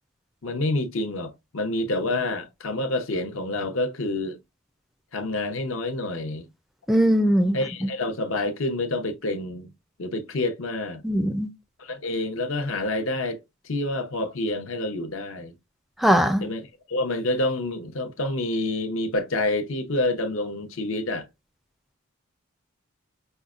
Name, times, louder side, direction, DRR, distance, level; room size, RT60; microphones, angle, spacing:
voice 1, 0.4-4.4 5.1-6.5 7.5-9.7 10.0-11.0 11.8-13.4 13.6-15.5 16.4-21.3, left 2 dB, 75° left, 0.8 m, -28 dB
voice 2, 6.9-7.6 11.0-11.5 16.0-16.5, equal, ahead, 0.4 m, -20 dB
5.4 x 2.1 x 2.4 m
head